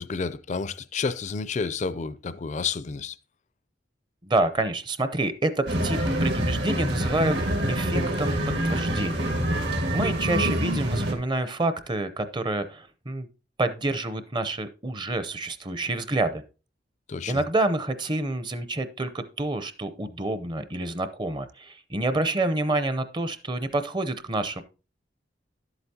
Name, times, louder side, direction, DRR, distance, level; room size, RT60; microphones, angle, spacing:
voice 1, 0.0-3.2 17.1-17.3, left 5 dB, 40° left, 0.4 m, -30 dB
voice 2, 4.2-8.4 8.6-9.3 9.9-13.3 13.6-16.4 17.3-24.6, right 2 dB, 25° right, 0.6 m, -28 dB
sound 1, 5.7-11.1, right 1 dB, 70° right, 2.1 m, -26 dB
11.0 x 8.0 x 2.8 m
head